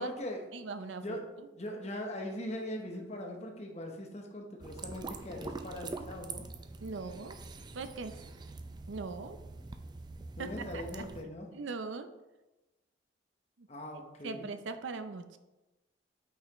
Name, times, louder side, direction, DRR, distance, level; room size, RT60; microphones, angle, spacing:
voice 1, 0.0-0.5 1.0-6.4 10.4-11.5 13.7-14.5, left 1 dB, 35° left, 3 dB, 0.9 m, -40 dB
voice 2, 0.5-1.2 6.8-7.4 7.7-8.2 8.9-9.4 10.4-10.5 10.7-11.0 11.5-12.1 13.6-13.7 14.2-15.4, right 4 dB, 75° right, 10 dB, 0.5 m, -40 dB
sound 1, 4.6-11.2, right 3 dB, 20° right, 0.4 m, -44 dB
8.4 x 5.6 x 3.0 m, 1.1 s
head